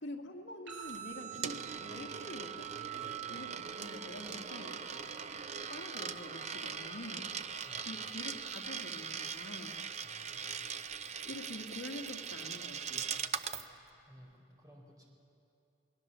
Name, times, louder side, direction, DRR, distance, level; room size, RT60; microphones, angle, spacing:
voice 1, 0.0-2.7 3.3-4.8 5.7-7.3 7.9-9.8 11.3-13.1, left 1 dB, 65° left, 2 dB, 1.9 m, -46 dB
sound 1, 0.7-8.7, right 12 dB, 75° right, 5.6 m, -49 dB
Coin (dropping), 0.9-13.7, right 6 dB, 35° right, 0.6 m, -41 dB
voice 2, 10.0-10.6 14.1-15.0, equal, 20° right, -1 dB, 4.2 m, -57 dB
29.0 x 19.0 x 6.9 m, 2.7 s
head